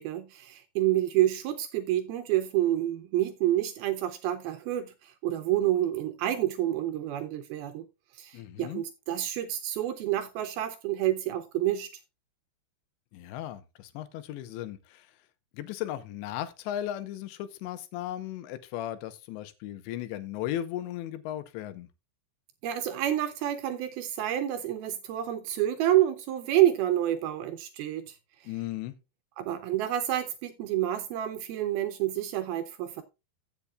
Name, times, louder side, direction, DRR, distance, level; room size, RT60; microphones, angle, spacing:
voice 1, 0.0-7.9 8.1-11.9 22.6-28.2 28.4-28.5 29.4-33.0, right 13 dB, 75° right, 2.3 m, -28 dB
voice 2, 8.3-8.8 13.1-15.1 15.5-21.9 28.5-29.0, left 12 dB, 85° left, 3.2 m, -36 dB
15.5 x 7.3 x 2.3 m
omnidirectional pair, 5.0 m